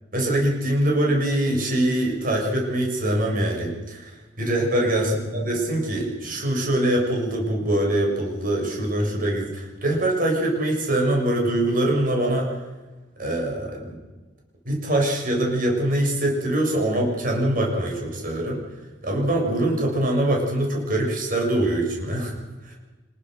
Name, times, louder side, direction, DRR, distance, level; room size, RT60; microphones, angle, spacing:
voice 1, 0.1-12.6 13.2-14.0 14.6-18.6 19.0-22.4 22.6-22.8, right 1 dB, 50° right, 0 dB, 6.8 m, -23 dB
27.0 x 21.0 x 6.6 m, 1.2 s
head